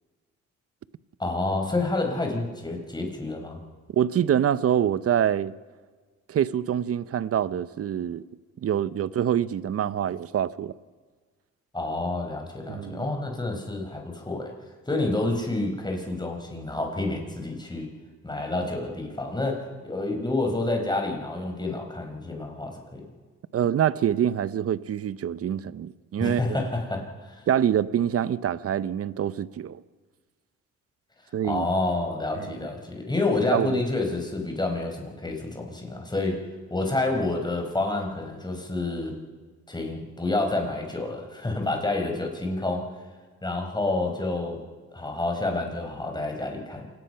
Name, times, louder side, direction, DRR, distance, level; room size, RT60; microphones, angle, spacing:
voice 1, 1.2-3.6 11.7-14.5 14.9-17.9 18.2-23.0 26.2-27.5 31.4-36.4 36.7-39.1 39.7-42.9 43.4-44.6 44.9-46.8, left 2 dB, 15° left, 4.7 m, -28 dB
voice 2, 3.9-5.5 6.3-8.2 8.6-10.7 12.7-13.1 23.5-26.4 27.5-29.8 31.3-31.7 32.4-32.6 33.5-33.8, right 9 dB, 50° right, 0.8 m, -25 dB
27.5 x 17.5 x 5.7 m
cardioid pair, 90°, 30 cm